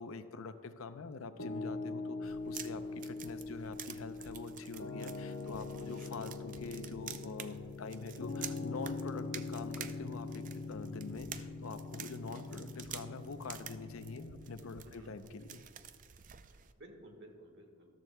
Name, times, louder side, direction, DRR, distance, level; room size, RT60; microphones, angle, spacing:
voice 1, 0.0-15.6, left 4 dB, 85° left, 10 dB, 0.6 m, -45 dB
Piano, 1.4-14.7, left 3 dB, 65° left, 0.8 m, -43 dB
sound 1, 2.2-16.7, right 9 dB, 40° right, 0.4 m, -50 dB
voice 2, 5.7-6.1 14.8-15.1 16.5-17.9, right 1 dB, 55° right, 2 dB, 1.5 m, -55 dB
13.5 x 12.0 x 2.2 m, 2.1 s
head